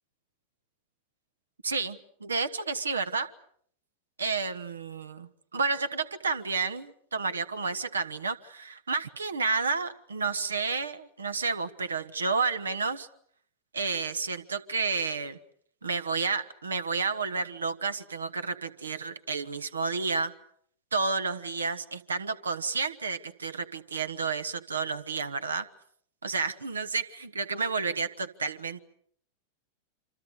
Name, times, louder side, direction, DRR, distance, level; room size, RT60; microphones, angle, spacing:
voice 1, 1.6-3.3 4.2-13.1 13.7-15.4 15.8-20.3 20.9-25.6 26.2-28.8, right 4 dB, 75° right, 11 dB, 1.3 m, -31 dB
27.0 x 26.5 x 6.7 m, 0.64 s
figure-of-eight pair, 90°, 0 cm